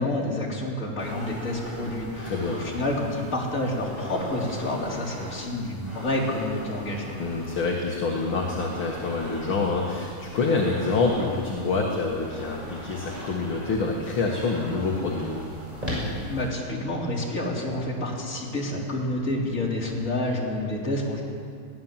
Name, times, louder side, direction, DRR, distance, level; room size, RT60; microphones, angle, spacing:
voice 1, 0.0-7.2 16.3-21.2, left 1 dB, 25° left, -3 dB, 3.7 m, -29 dB
sound 1, 1.0-16.5, equal, 10° right, 6.7 m, -39 dB
voice 2, 2.2-2.6 7.2-15.4, left 3 dB, 50° left, -1 dB, 2.4 m, -26 dB
22.0 x 16.5 x 7.5 m, 2.3 s
omnidirectional pair, 3.3 m